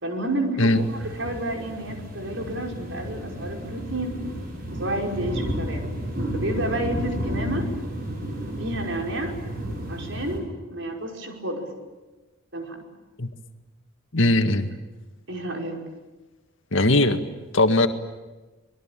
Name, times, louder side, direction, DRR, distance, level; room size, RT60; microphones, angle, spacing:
voice 1, 0.0-4.2 4.8-5.9 6.3-7.7 8.6-9.4 9.9-11.7 12.5-12.8 15.3-15.8, right 1 dB, 70° right, 1 dB, 5.6 m, -30 dB
sound 1, 0.7-10.4, equal, 45° right, 6.8 m, -32 dB
voice 2, 14.1-14.7 16.7-17.2 17.5-17.9, left 2 dB, 75° left, 7 dB, 1.9 m, -19 dB
26.0 x 21.5 x 9.1 m, 1.2 s
head